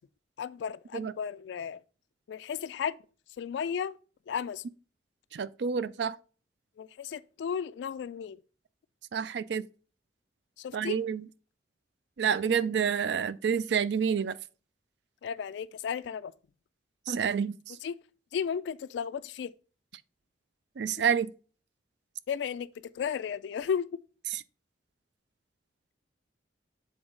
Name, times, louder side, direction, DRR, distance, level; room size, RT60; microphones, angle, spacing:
voice 1, 0.4-1.8 2.3-3.0 3.4-3.9 4.3-4.6 6.8-8.4 10.6-11.0 15.2-16.3 17.8-17.9 18.3-19.5 22.3-22.7 23.0-23.9, left 7 dB, 70° left, 0.3 m, -34 dB
voice 2, 5.3-6.2 9.1-9.6 10.7-11.3 12.2-14.4 17.1-17.8 20.8-21.3 24.3-24.4, right 7 dB, 65° right, 0.4 m, -28 dB
7.8 x 3.9 x 3.7 m
head